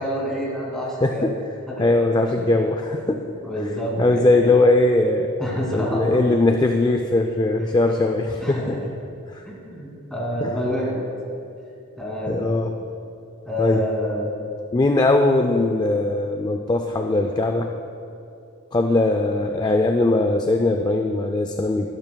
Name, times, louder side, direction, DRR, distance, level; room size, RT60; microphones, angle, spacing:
voice 1, 0.0-1.3 1.8-1.9 3.4-4.3 5.4-6.3 8.4-8.7 9.4-11.0 12.0-12.4 13.5-14.3, equal, 5° left, -5 dB, 2.5 m, -27 dB
voice 2, 1.0-1.4 1.8-3.2 4.0-5.3 5.7-8.8 9.3-9.4 10.4-10.5 12.3-12.7 13.6-13.8 14.7-17.7 18.7-21.9, left 2 dB, 20° left, 4 dB, 0.4 m, -20 dB
13.5 x 12.5 x 2.3 m, 2.6 s
head